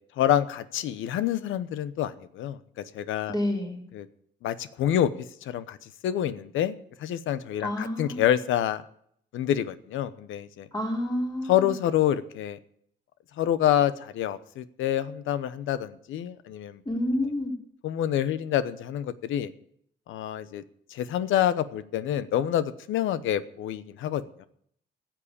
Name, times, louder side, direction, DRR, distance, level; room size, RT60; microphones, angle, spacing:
voice 1, 0.2-2.6 2.9-3.3 3.9-4.1 4.4-5.1 5.4-5.8 6.0-6.7 7.0-8.8 9.3-10.7 11.5-12.6 13.4-16.8 17.8-19.5 20.1-20.6 20.9-24.5, left 11 dB, 85° left, 14 dB, 0.9 m, -27 dB
voice 2, 3.3-3.8 7.6-8.2 10.7-11.7 16.8-17.5, left 1 dB, 20° left, -1 dB, 4.8 m, -29 dB
15.0 x 7.5 x 8.6 m, 0.67 s
cardioid pair, 90°, 20 cm